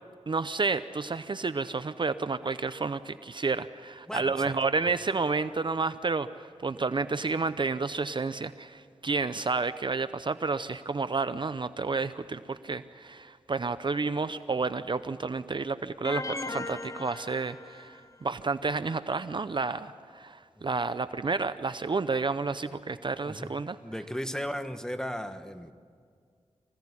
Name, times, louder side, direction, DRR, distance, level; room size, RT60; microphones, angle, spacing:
voice 1, 0.3-23.8, right 4 dB, 45° right, 12 dB, 0.6 m, -30 dB
voice 2, 4.1-4.5 20.6-20.7 23.3-23.5 23.8-25.7, equal, 5° left, 8 dB, 1.3 m, -36 dB
sound 1, 16.0-18.1, left 3 dB, 25° left, 0.6 m, -38 dB
24.5 x 16.5 x 9.7 m, 2.1 s
wide cardioid pair, 75°, 12 cm